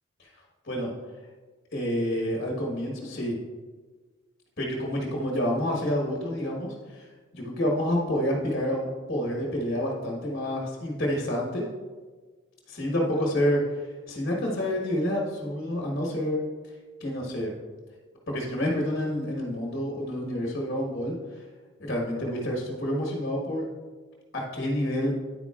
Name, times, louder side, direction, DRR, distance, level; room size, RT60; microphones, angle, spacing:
voice 1, 1.7-3.4 4.6-7.1 7.3-11.7 12.7-16.4 17.0-17.5 18.3-21.1 21.8-23.6 24.3-25.1, equal, 45° left, -2 dB, 1.4 m, -28 dB
9.8 x 8.8 x 2.4 m, 1.4 s
head